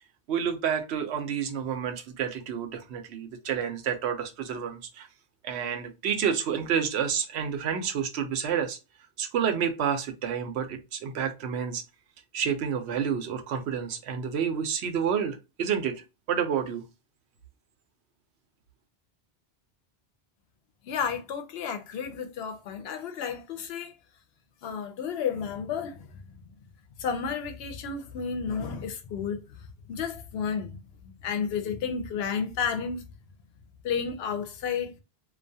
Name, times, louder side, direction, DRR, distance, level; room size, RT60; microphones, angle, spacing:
voice 1, 0.3-5.1 5.4-8.8 9.2-11.8 12.3-15.9 16.3-16.8, right 7 dB, 90° right, 0.9 m, -29 dB
voice 2, 20.9-23.9 24.6-26.1 27.0-29.4 29.9-30.8 31.0-33.0 33.8-34.9, left 6 dB, 75° left, 0.8 m, -32 dB
2.3 x 2.2 x 2.6 m
omnidirectional pair, 1.1 m